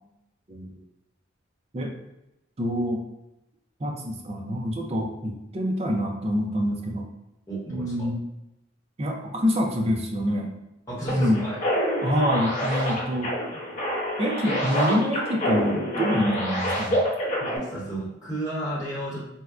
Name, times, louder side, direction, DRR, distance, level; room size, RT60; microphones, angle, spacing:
voice 1, 0.5-0.8 1.7-1.9 2.6-3.0 3.8-7.1 7.7-8.2 9.0-10.5 11.1-11.5 12.0-13.3 14.2-17.0, equal, 30° right, 1 dB, 0.4 m, -26 dB
voice 2, 7.5-8.1 10.9-11.6 17.3-19.2, right 1 dB, 15° left, -9 dB, 1.0 m, -33 dB
sound 1, 11.1-17.6, equal, 40° left, 1.0 m, -27 dB
4.2 x 2.1 x 2.4 m, 0.92 s
head